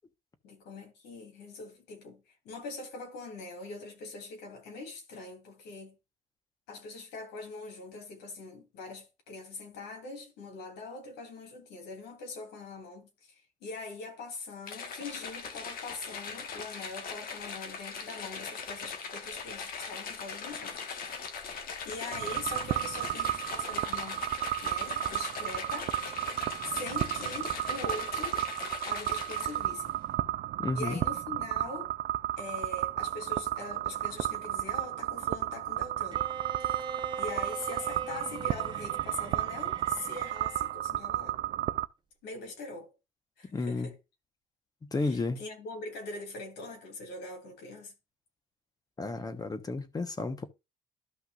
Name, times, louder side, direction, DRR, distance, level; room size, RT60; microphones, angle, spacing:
voice 1, 0.4-5.9 6.7-21.5 21.8-24.2 24.6-25.9 26.6-28.4 28.8-30.0 30.7-31.9 32.4-36.2 36.7-36.9 37.2-41.4 42.2-42.9 43.4-43.9 44.9-47.9, left 3 dB, 85° left, 3.3 m, -42 dB
sound 1, 14.7-29.8, left 5 dB, 60° left, 1.5 m, -40 dB
sound 2, 22.1-41.9, right 13 dB, 55° right, 0.5 m, -33 dB
voice 2, 30.6-31.0 43.5-43.9 44.9-45.4 49.0-50.5, left 3 dB, 20° left, 1.1 m, -32 dB
Bowed string instrument, 36.1-40.8, right 4 dB, 25° right, 0.9 m, -42 dB
13.0 x 5.7 x 2.5 m
cardioid pair, 110°, 17 cm